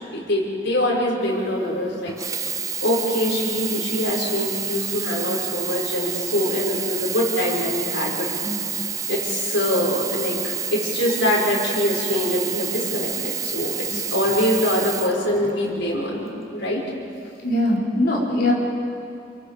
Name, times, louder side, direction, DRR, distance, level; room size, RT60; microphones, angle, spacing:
voice 1, 0.0-2.1 2.8-8.3 9.1-16.8, left 1 dB, 85° left, -3 dB, 5.8 m, -24 dB
Sink (filling or washing), 2.1-15.8 16.6-16.7, right 7 dB, 20° right, 0.5 m, -29 dB
voice 2, 17.4-18.5, left 1 dB, 55° left, -5 dB, 4.6 m, -22 dB
29.0 x 23.0 x 5.1 m, 2.6 s
head